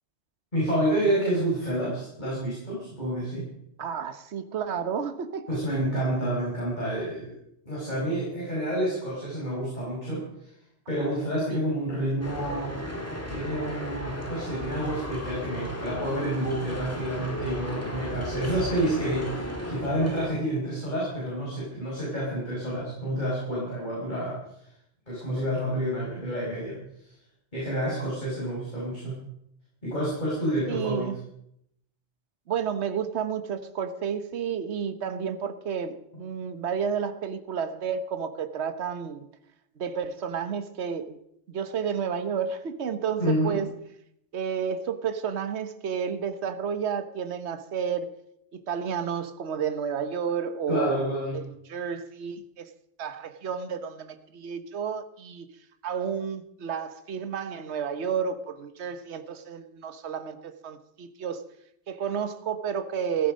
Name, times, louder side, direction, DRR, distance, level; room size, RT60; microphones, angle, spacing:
voice 1, 0.5-3.5 5.5-7.3 7.7-10.2 10.9-12.8 13.3-24.4 25.1-26.7 27.5-29.2 29.8-31.1 43.2-43.6 50.7-51.4, right 1 dB, 40° left, 5.8 m, -29 dB
voice 2, 3.8-5.5 11.5-11.6 30.7-31.2 32.5-39.3 39.8-41.2 41.5-43.7 44.3-48.1 48.5-52.7 53.0-55.5 55.8-61.4 61.9-63.3, right 7 dB, 70° right, 1.3 m, -31 dB
sound 1, 12.2-20.3, equal, 10° left, 2.1 m, -35 dB
15.5 x 13.5 x 5.2 m
omnidirectional pair, 1.2 m